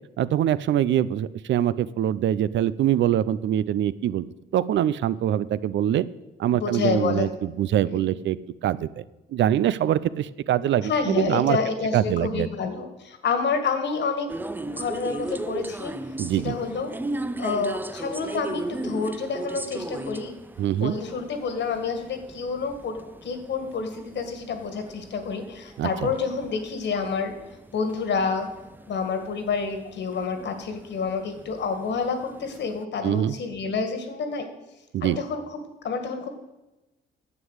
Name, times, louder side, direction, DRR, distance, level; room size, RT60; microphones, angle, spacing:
voice 1, 0.2-4.3 4.5-6.1 6.4-8.4 8.6-9.0 9.3-11.6 11.9-12.5 16.2-16.6 20.6-21.0 25.8-26.1 33.0-33.3 34.9-35.2, right 11 dB, 70° right, 17 dB, 0.6 m, -24 dB
voice 2, 6.5-7.3 7.8-8.1 10.8-14.3 14.6-15.9 16.4-16.9 17.4-20.3 20.8-27.3 27.7-28.5 28.9-34.5 35.0-35.6 35.8-36.3, left 5 dB, 65° left, 7 dB, 2.0 m, -28 dB
sound 1, 14.3-32.8, right 2 dB, 10° right, 0.5 m, -37 dB
9.8 x 7.3 x 8.0 m, 1.0 s
cardioid pair, 90°, 20 cm